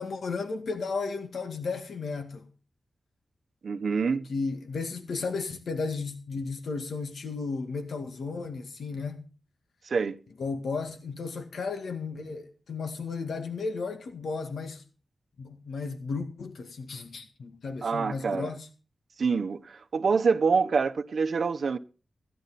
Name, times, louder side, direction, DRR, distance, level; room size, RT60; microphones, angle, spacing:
voice 1, 0.0-2.5 4.3-9.2 10.4-14.8 15.4-18.7, left 4 dB, 90° left, 2.0 m, -34 dB
voice 2, 3.6-4.3 9.8-10.2 17.8-18.5 19.2-21.8, right 5 dB, 60° right, 1.0 m, -26 dB
16.0 x 11.5 x 4.2 m
wide cardioid pair, 155°, 0 cm